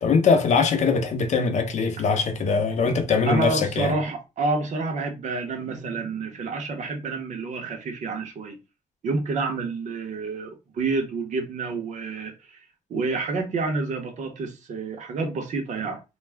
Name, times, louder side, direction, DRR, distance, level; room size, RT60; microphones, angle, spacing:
voice 1, 0.0-3.9, left 5 dB, 55° left, 0.6 m, -22 dB
voice 2, 3.3-8.6 9.0-12.3 12.9-16.0, right 3 dB, 55° right, 0.8 m, -28 dB
2.4 x 2.1 x 3.3 m
cardioid pair, 130°, 14 cm